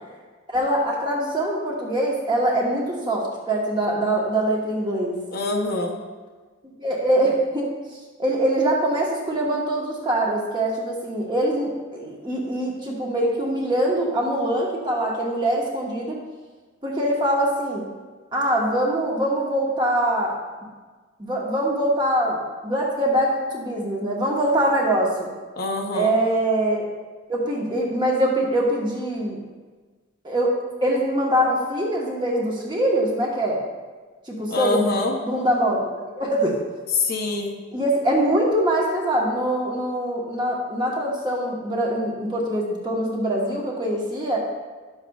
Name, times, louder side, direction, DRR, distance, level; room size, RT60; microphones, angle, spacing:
voice 1, 0.5-5.2 6.8-7.7 8.2-16.2 16.8-17.8 18.3-20.3 21.2-22.4 22.6-25.3 25.9-26.9 27.3-29.4 30.2-33.6 34.3-36.6 37.7-44.4, right 1 dB, 20° right, -3 dB, 1.2 m, -23 dB
voice 2, 5.3-6.0 25.6-26.2 34.5-35.2 36.9-37.6, left 3 dB, 50° left, 1 dB, 0.8 m, -25 dB
11.0 x 7.1 x 2.3 m, 1.4 s
head